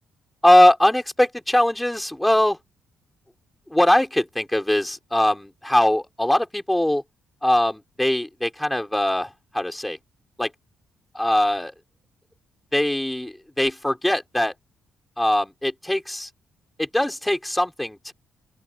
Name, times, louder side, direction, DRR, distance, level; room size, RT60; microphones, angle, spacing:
voice 1, 0.4-2.6 3.7-7.0 7.4-10.0 10.4-10.5 11.1-11.7 12.7-14.5 15.2-16.3 16.8-18.1, left 1 dB, 5° left, 4.3 m, -21 dB
open air
cardioid pair, 105°, 0 cm